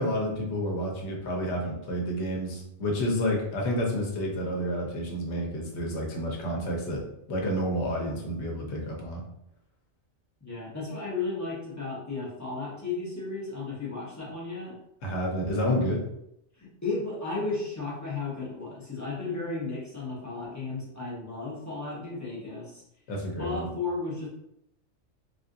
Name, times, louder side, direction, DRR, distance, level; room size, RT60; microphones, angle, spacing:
voice 1, 0.0-9.2 15.0-16.0 23.1-23.7, equal, 70° left, 0 dB, 1.1 m, -30 dB
voice 2, 10.4-14.7 16.6-22.8 23.4-24.3, left 3 dB, 15° left, -7 dB, 0.9 m, -34 dB
3.5 x 2.5 x 2.6 m, 0.80 s
omnidirectional pair, 1.2 m